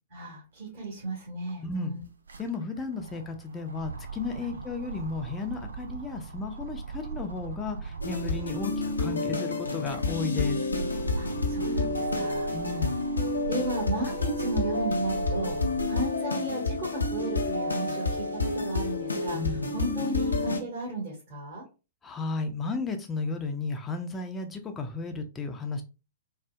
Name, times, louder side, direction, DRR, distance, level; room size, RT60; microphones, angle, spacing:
voice 1, 0.1-2.0 4.4-4.6 11.1-12.5 13.5-15.6 15.9-19.4 19.7-21.6, right 2 dB, 40° right, -7 dB, 1.8 m, -34 dB
sound 1, 1.0-1.1 1.3-9.1 9.6-16.1 16.6-17.8, right 5 dB, 70° right, 0.4 m, -40 dB
voice 2, 1.6-1.9 2.4-8.7 9.0-10.7 12.5-13.0 19.3-19.8 22.0-25.8, left 3 dB, 15° left, 4 dB, 0.6 m, -34 dB
sound 2, 8.0-20.6, left 3 dB, 80° left, 0.6 m, -29 dB
3.9 x 2.4 x 2.3 m, 0.31 s
figure-of-eight pair, 110°, 0 cm